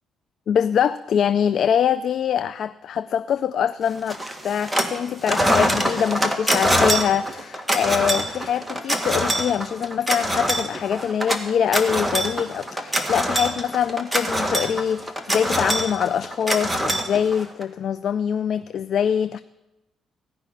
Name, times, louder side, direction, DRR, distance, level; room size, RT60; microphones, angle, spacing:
voice 1, 0.5-19.4, left 8 dB, 65° left, 0.4 m, -24 dB
sound 1, 4.1-5.0 5.2-17.6, equal, 5° right, 1.7 m, -24 dB
16.5 x 5.8 x 9.8 m
cardioid pair, 90°, 0 cm